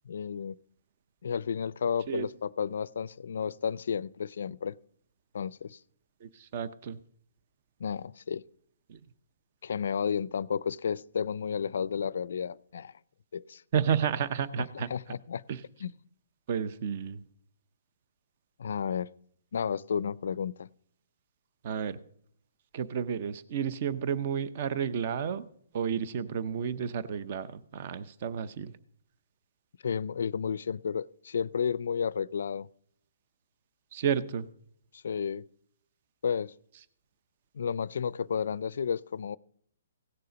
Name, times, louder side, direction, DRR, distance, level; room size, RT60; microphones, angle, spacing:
voice 1, 0.1-0.6 1.2-4.8 5.3-5.8 7.8-8.4 9.6-12.9 13.3-13.6 14.6-15.4 15.8-15.9 18.6-19.1 19.5-20.7 29.8-32.7 34.9-35.5 36.2-36.5 37.5-39.4, left 7 dB, 70° left, 0.3 m, -32 dB
voice 2, 6.2-7.0 8.9-9.0 13.7-14.9 15.5-15.6 16.5-17.2 21.6-22.0 22.7-25.4 25.7-28.7 33.9-34.5, right 8 dB, 45° right, 0.6 m, -31 dB
16.5 x 6.8 x 5.1 m
hypercardioid pair, 155°, 0 cm